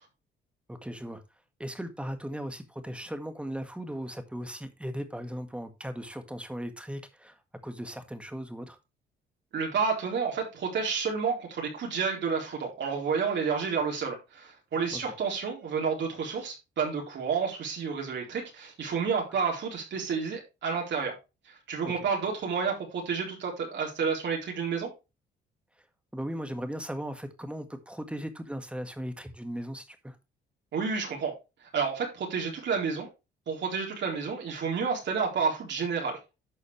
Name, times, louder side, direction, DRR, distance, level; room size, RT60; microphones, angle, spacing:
voice 1, 0.7-1.2 1.6-7.4 7.6-8.8 14.9-15.0 21.9-22.0 26.1-30.2, equal, 5° right, 1.8 m, -37 dB
voice 2, 9.5-21.1 21.5-24.9 30.7-31.3 31.7-33.1 33.5-36.2, right 5 dB, 65° right, 4.1 m, -30 dB
11.5 x 6.3 x 3.3 m
cardioid pair, 90°, 20 cm